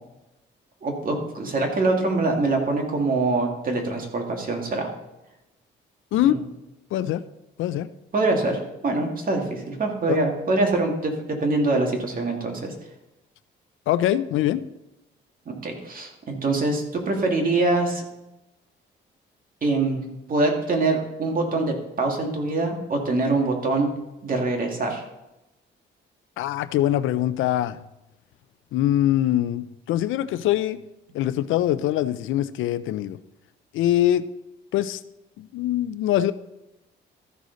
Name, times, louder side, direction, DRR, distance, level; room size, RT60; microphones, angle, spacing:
voice 1, 0.8-4.9 6.2-6.4 8.1-12.7 15.5-18.0 19.6-20.0 20.3-23.9 24.2-25.0, right 2 dB, 45° right, 2 dB, 2.2 m, -24 dB
voice 2, 6.9-7.2 7.6-7.9 10.1-10.2 13.9-14.6 26.4-27.8 28.7-30.8 31.1-33.2 33.7-34.3 34.7-35.0 35.4-36.3, left 13 dB, 85° left, 15 dB, 0.5 m, -23 dB
14.0 x 6.4 x 4.0 m, 0.93 s
cardioid pair, 90°, 20 cm